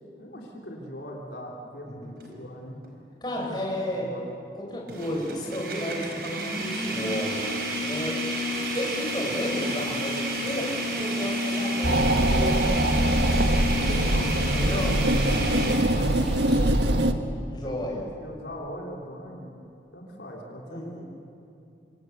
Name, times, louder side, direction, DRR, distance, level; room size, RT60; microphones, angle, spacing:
voice 1, 0.2-2.8 3.3-3.6 4.0-4.3 13.7-16.7 17.6-19.5 19.9-21.0, equal, 75° left, -1 dB, 3.7 m, -40 dB
voice 2, 1.8-2.2 3.2-4.1 4.5-7.4 7.9-8.2 8.7-12.5 14.5-15.0 16.6-17.0 17.4-18.0 20.7-21.0, left 1 dB, 25° left, -2 dB, 6.2 m, -32 dB
sound 1, 2.2-2.3 2.8-2.9 4.9-15.7, equal, 60° right, 4.8 m, -30 dB
Water tap faucet, 8.5-16.6, left 1 dB, ahead, 8.0 m, -45 dB
sound 2, 11.8-17.1, right 1 dB, 80° right, 1.5 m, -23 dB
26.0 x 26.0 x 8.2 m, 2.6 s
head